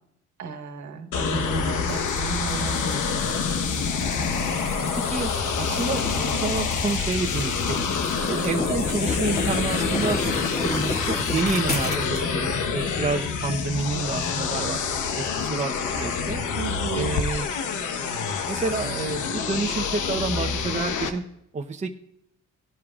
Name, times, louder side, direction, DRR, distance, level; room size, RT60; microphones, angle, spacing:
voice 1, 0.4-3.2 16.6-17.2, right 5 dB, 70° right, 5 dB, 1.6 m, -33 dB
sound 1, 1.1-21.1, left 5 dB, 85° left, 1.2 m, -27 dB
sound 2, 1.9-12.3, left 2 dB, 30° left, 2.9 m, -33 dB
voice 2, 5.6-7.8 8.3-10.2 10.6-14.8 15.1-16.4 16.9-17.5 18.5-21.2 21.5-21.9, right 4 dB, 25° right, 3 dB, 0.9 m, -29 dB
18.0 x 12.5 x 2.4 m, 0.78 s
cardioid pair, 90°, 30 cm